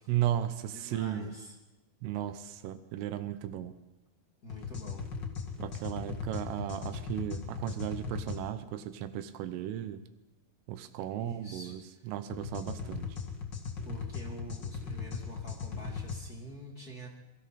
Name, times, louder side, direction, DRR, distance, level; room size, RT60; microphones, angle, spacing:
voice 1, 0.1-1.3 2.0-3.8 5.6-10.0 10.7-13.2, right 11 dB, 85° right, 11 dB, 3.6 m, -35 dB
voice 2, 0.7-1.5 4.4-5.1 11.2-11.7 13.8-17.1, right 1 dB, 35° left, 0 dB, 1.6 m, -46 dB
sound 1, 4.5-8.4 12.3-16.2, left 5 dB, 70° left, 1.0 m, -38 dB
27.0 x 23.5 x 4.3 m, 1.0 s
omnidirectional pair, 5.7 m